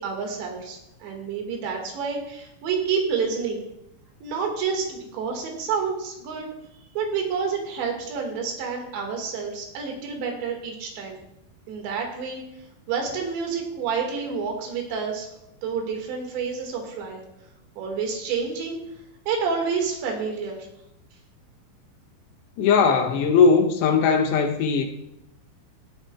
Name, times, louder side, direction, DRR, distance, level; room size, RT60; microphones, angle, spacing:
voice 1, 0.0-3.6 4.2-6.5 7.0-11.2 11.7-12.4 12.9-15.3 15.6-17.2 17.8-18.8 19.3-20.7, right 5 dB, 75° right, 3.9 m, -29 dB
voice 2, 22.6-24.8, left 5 dB, 80° left, 2.7 m, -19 dB
16.5 x 10.5 x 2.3 m
omnidirectional pair, 5.2 m